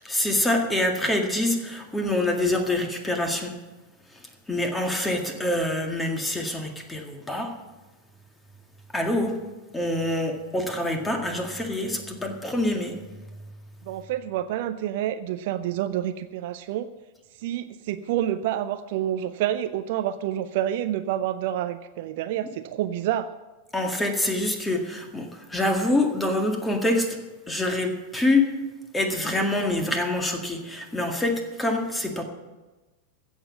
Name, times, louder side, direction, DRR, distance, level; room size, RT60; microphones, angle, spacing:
voice 1, 0.0-3.6 4.5-7.5 8.9-9.4 9.7-13.0 23.7-27.2 27.5-28.5 28.9-32.2, left 1 dB, 10° left, 4 dB, 1.9 m, -25 dB
voice 2, 13.8-16.9 17.4-23.3, right 11 dB, 50° right, 12 dB, 0.5 m, -28 dB
15.5 x 7.3 x 7.4 m, 1.2 s
figure-of-eight pair, 90°, 0 cm